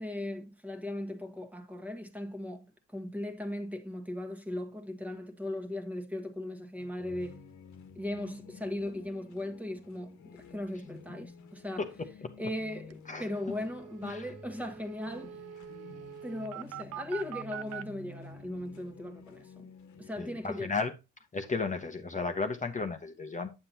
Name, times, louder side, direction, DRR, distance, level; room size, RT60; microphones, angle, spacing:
voice 1, 0.0-2.6 2.9-7.4 8.0-10.2 10.5-11.8 12.4-15.4 16.2-19.5 20.0-20.7, left 1 dB, 5° right, 1.5 m, -38 dB
sound 1, 6.8-20.1, left 4 dB, 70° left, 1.6 m, -51 dB
voice 2, 11.8-12.3 13.1-13.3 14.0-14.3 20.2-20.9 21.3-23.5, left 4 dB, 25° left, 1.1 m, -34 dB
sound 2, 12.6-12.7 12.9-13.0 13.2-17.8, right 10 dB, 55° right, 0.6 m, -44 dB
8.7 x 7.7 x 2.8 m
cardioid pair, 90°, 30 cm